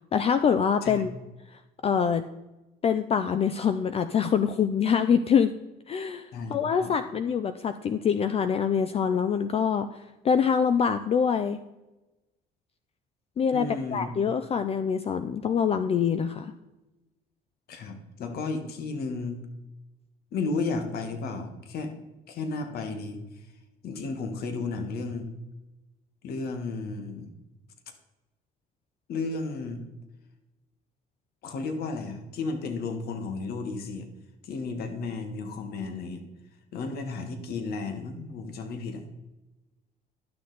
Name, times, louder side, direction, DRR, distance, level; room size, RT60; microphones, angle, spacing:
voice 1, 0.1-1.1 1.8-2.2 2.8-5.5 5.9-10.0 10.2-11.6 13.4-16.5, left 7 dB, 35° left, 11 dB, 0.4 m, -25 dB
voice 2, 6.3-6.9 13.5-14.2 17.7-19.4 20.3-21.9 22.3-23.2 23.8-25.3 26.2-27.3 29.1-29.8 31.4-34.1 34.4-36.2 36.7-39.0, left 3 dB, 65° left, 6 dB, 1.4 m, -33 dB
11.5 x 6.5 x 4.0 m, 1.0 s
cardioid pair, 110°, 17 cm